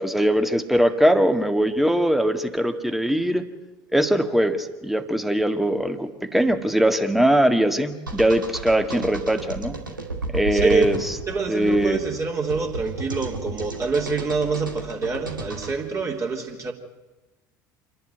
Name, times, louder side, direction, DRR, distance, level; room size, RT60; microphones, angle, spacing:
voice 1, 0.0-3.4 3.9-9.8 10.3-11.1 11.5-12.0, right 1 dB, ahead, 1.8 m, -21 dB
sound 1, 8.1-15.7, right 2 dB, 85° right, 2.3 m, -33 dB
voice 2, 10.5-10.9 11.3-16.7, right 4 dB, 30° right, 3.2 m, -26 dB
27.5 x 11.0 x 9.1 m
figure-of-eight pair, 65°, 10 cm